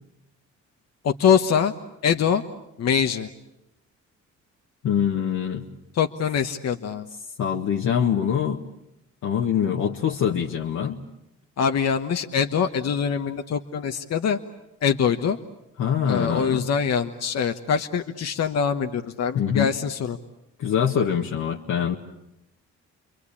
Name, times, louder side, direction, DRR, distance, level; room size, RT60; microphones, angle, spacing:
voice 1, 1.0-1.7 2.0-2.4 2.8-3.3 5.9-7.1 11.6-14.4 14.8-15.4 16.1-20.2, left 7 dB, 55° left, 6 dB, 1.2 m, -23 dB
voice 2, 4.8-5.7 7.4-8.7 9.2-11.0 15.8-16.7 19.3-19.7 20.6-21.9, left 8 dB, 75° left, -1 dB, 1.7 m, -24 dB
29.5 x 23.0 x 8.6 m, 0.87 s
cardioid pair, 90°, 30 cm